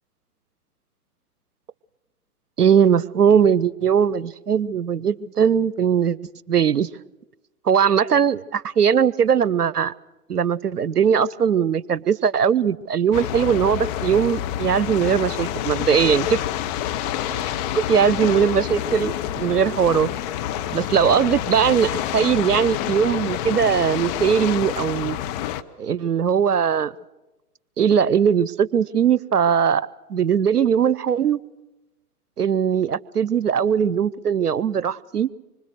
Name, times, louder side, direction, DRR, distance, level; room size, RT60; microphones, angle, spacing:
voice 1, 2.6-6.2 6.5-6.9 7.7-9.9 10.3-16.4 17.4-20.1 20.7-25.2 25.8-26.9 27.8-31.4 32.4-35.3, right 7 dB, 85° right, 21 dB, 0.7 m, -20 dB
sound 1, 13.1-25.6, left 11 dB, 25° left, 0.8 m, -28 dB
25.5 x 25.0 x 6.5 m, 1.0 s
figure-of-eight pair, 110°, 45 cm